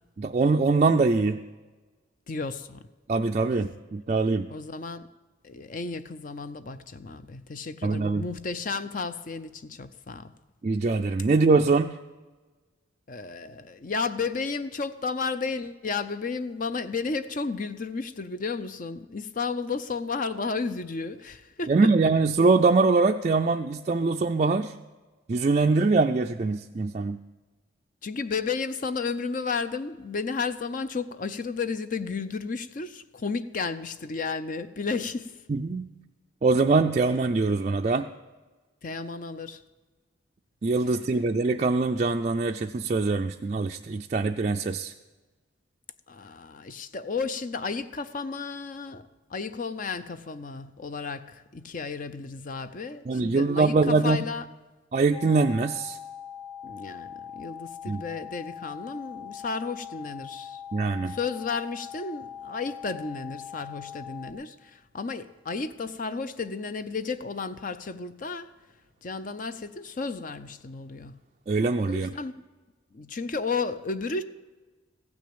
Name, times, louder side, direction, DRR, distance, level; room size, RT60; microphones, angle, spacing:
voice 1, 0.2-1.4 3.1-4.5 7.8-8.2 10.6-12.0 21.7-24.7 25.3-27.2 35.5-35.9 36.4-38.1 40.6-44.9 53.1-54.2 54.9-56.0 57.9-58.0 60.7-61.2 71.5-72.1, right 3 dB, 35° right, 0.3 m, -23 dB
voice 2, 2.3-2.8 4.5-5.1 5.4-10.3 13.1-21.8 28.0-35.4 38.8-39.6 46.1-54.5 56.6-60.6 61.1-68.5 69.0-71.2 71.8-72.3 72.9-74.2, left 4 dB, 45° left, 0.5 m, -33 dB
sound 1, 55.1-64.3, left 8 dB, ahead, 0.7 m, -41 dB
15.5 x 6.3 x 8.6 m
head